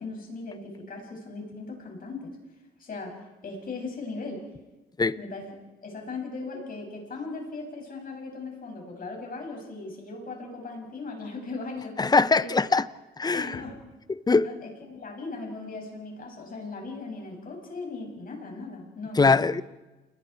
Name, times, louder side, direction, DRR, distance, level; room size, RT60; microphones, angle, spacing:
voice 1, 0.0-2.3 2.8-3.1 3.4-4.4 5.2-5.5 5.8-12.0 12.3-12.8 13.3-13.8 14.3-19.4, left 3 dB, 45° left, 1 dB, 7.4 m, -38 dB
voice 2, 12.0-12.9 13.2-13.6 14.1-14.5 19.2-19.6, left 4 dB, 20° left, 16 dB, 0.8 m, -22 dB
28.5 x 21.0 x 4.7 m, 1.1 s
cardioid pair, 90°, 20 cm